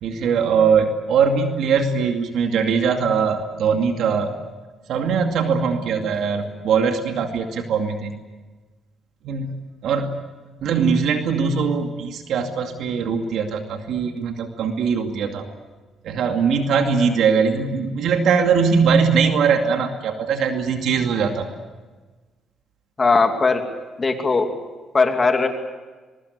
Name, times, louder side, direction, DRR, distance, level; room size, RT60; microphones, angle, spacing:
voice 1, 0.0-4.3 4.9-8.2 9.2-9.5 9.8-10.1 10.6-15.5 16.0-21.5, right 6 dB, 80° right, 4 dB, 2.4 m, -21 dB
voice 2, 23.0-23.6 24.0-24.5 24.9-25.5, left 4 dB, 30° left, 5 dB, 2.8 m, -18 dB
23.5 x 23.0 x 8.2 m, 1.3 s
cardioid pair, 90°, 0 cm